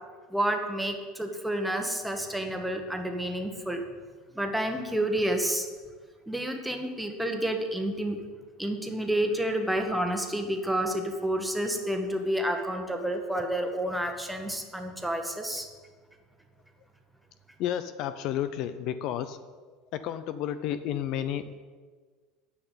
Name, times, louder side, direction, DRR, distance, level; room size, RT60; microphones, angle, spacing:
voice 1, 0.3-3.8 4.3-5.7 6.3-8.2 8.6-15.7, right 1 dB, 5° right, 4 dB, 1.2 m, -29 dB
voice 2, 17.6-19.4 19.9-21.6, left 10 dB, 55° left, 12 dB, 0.5 m, -31 dB
9.7 x 5.8 x 8.5 m, 1.5 s
supercardioid pair, 130°, 0 cm